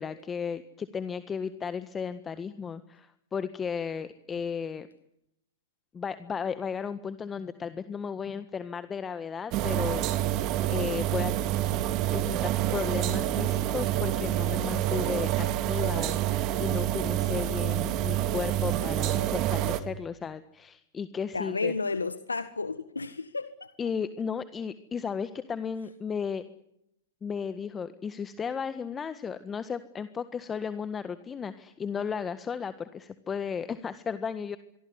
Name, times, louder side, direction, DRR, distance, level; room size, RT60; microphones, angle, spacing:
voice 1, 0.0-4.9 5.9-10.4 10.7-11.3 12.1-16.2 16.6-21.7 23.8-26.4 27.2-34.6, left 6 dB, 20° left, 12 dB, 1.6 m, -34 dB
sound 1, 9.5-19.8, right 12 dB, 40° right, 3.0 m, -27 dB
voice 2, 21.3-23.7, left 4 dB, 90° left, 11 dB, 1.7 m, -32 dB
25.5 x 23.5 x 9.8 m, 0.79 s
hypercardioid pair, 110°, 0 cm